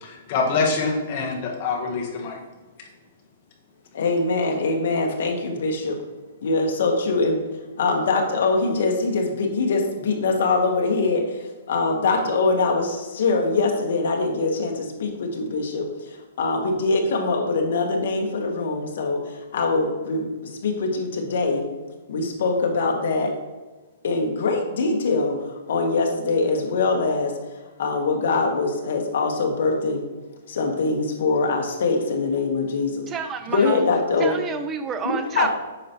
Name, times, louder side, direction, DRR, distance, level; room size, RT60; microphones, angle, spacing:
voice 1, 0.0-2.4, left 4 dB, 30° left, -1 dB, 1.1 m, -25 dB
voice 2, 3.9-6.0 6.4-7.4 7.8-21.7 22.1-23.3 24.0-27.3 27.8-30.1 30.5-33.1 33.5-34.4 35.0-35.5, left 3 dB, 50° left, 2 dB, 1.2 m, -23 dB
voice 3, 33.1-33.8 34.2-35.5, right 6 dB, 10° right, 9 dB, 0.3 m, -29 dB
8.4 x 5.4 x 3.0 m, 1.2 s
hypercardioid pair, 180°, 0 cm